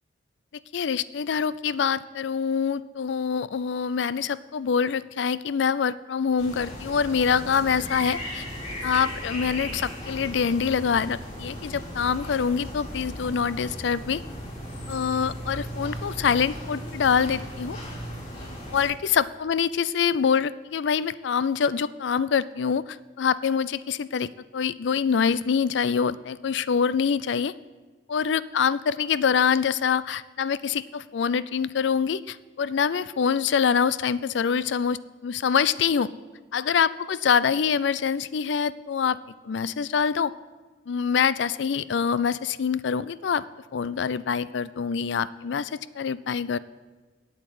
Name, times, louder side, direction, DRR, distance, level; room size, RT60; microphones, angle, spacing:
voice 1, 0.7-8.4 8.8-14.2 14.9-17.8 18.7-27.5 28.1-36.1 36.5-39.2 39.4-40.3 40.9-43.4 43.7-46.6, left 6 dB, 80° left, 18 dB, 0.4 m, -25 dB
sound 1, 6.4-18.9, equal, 35° left, 3.8 m, -36 dB
8.7 x 8.5 x 7.7 m, 1.3 s
head